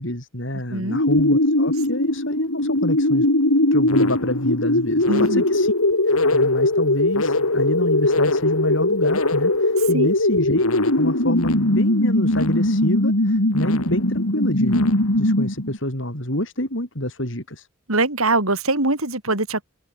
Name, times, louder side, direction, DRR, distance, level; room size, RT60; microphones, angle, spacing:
voice 1, 0.0-3.3 3.7-5.8 6.1-10.6 11.0-14.9 15.1-17.7, left 1 dB, 60° left, 6.9 m, -27 dB
sound 1, 0.9-15.8, left 1 dB, 85° left, 4.0 m, -20 dB
voice 2, 5.1-5.4 9.9-10.1 17.9-19.6, right 2 dB, 85° right, 5.4 m, -22 dB
head